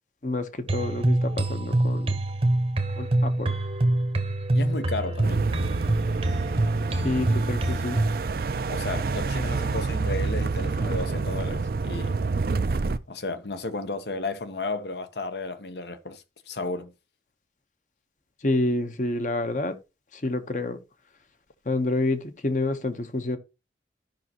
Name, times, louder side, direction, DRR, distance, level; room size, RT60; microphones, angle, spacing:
voice 1, 0.2-2.1 3.0-3.5 6.9-8.0 18.4-19.8 20.1-20.8 21.7-23.4, left 2 dB, 45° left, 0.9 m, -28 dB
sound 1, 0.7-8.2, right 1 dB, 30° right, 0.8 m, -25 dB
voice 2, 4.5-5.4 8.7-12.2 13.1-16.9, left 3 dB, 70° left, 0.9 m, -33 dB
sound 2, 5.2-13.0, right 4 dB, 55° right, 0.5 m, -28 dB
13.5 x 5.4 x 2.9 m
head